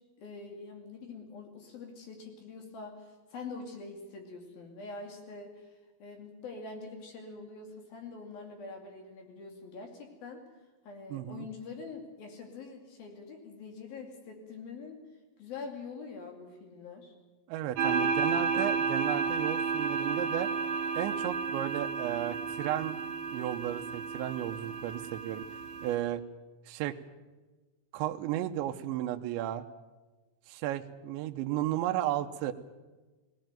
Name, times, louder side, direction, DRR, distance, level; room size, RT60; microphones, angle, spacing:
voice 1, 0.2-5.7 6.0-10.4 10.9-15.0 15.4-17.1 17.9-18.8, left 4 dB, 50° left, 3 dB, 4.0 m, -45 dB
voice 2, 11.1-11.5 17.5-20.5 21.0-23.0 23.3-25.5 25.8-26.2 26.7-27.0 27.9-29.6 30.5-32.5, right 13 dB, 80° right, 6 dB, 2.8 m, -34 dB
sound 1, 17.8-26.0, right 5 dB, 55° right, 3.8 m, -32 dB
18.5 x 18.0 x 9.1 m, 1.2 s
omnidirectional pair, 5.9 m